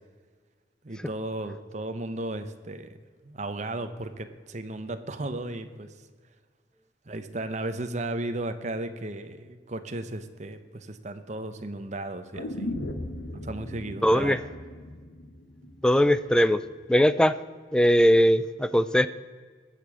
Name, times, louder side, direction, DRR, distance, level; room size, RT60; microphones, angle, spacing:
voice 1, 0.8-2.9 3.2-5.9 7.1-12.7 13.3-14.4 15.6-15.7, right 2 dB, 40° right, 9 dB, 0.9 m, -35 dB
sound 1, 12.3-16.4 16.7-16.8, left 1 dB, 75° left, 1.2 m, -37 dB
voice 2, 14.0-14.4 15.8-16.6 16.9-17.4 17.7-19.1, equal, 5° left, 14 dB, 0.4 m, -20 dB
19.0 x 6.9 x 6.2 m, 1.6 s
head